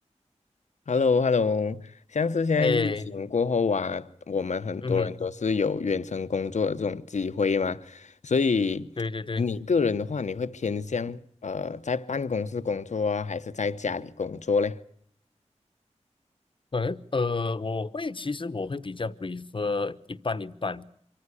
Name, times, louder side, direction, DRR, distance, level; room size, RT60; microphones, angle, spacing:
voice 1, 0.9-8.9 9.4-14.8, left 5 dB, 80° left, 0.9 m, -27 dB
voice 2, 2.6-3.1 4.8-5.1 9.0-9.5 16.7-20.8, left 3 dB, 45° left, 1.0 m, -29 dB
25.0 x 14.5 x 9.9 m
wide cardioid pair, 90°, 12 cm